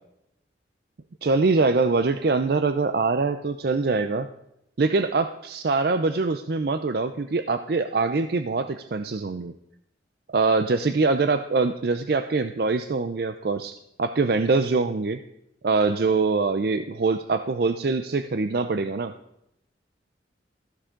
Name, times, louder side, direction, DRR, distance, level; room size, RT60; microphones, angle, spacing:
voice 1, 1.2-4.3 4.8-9.5 10.3-15.2 15.6-19.1, right 3 dB, 55° right, 10 dB, 0.5 m, -24 dB
15.0 x 11.5 x 3.8 m, 0.82 s
head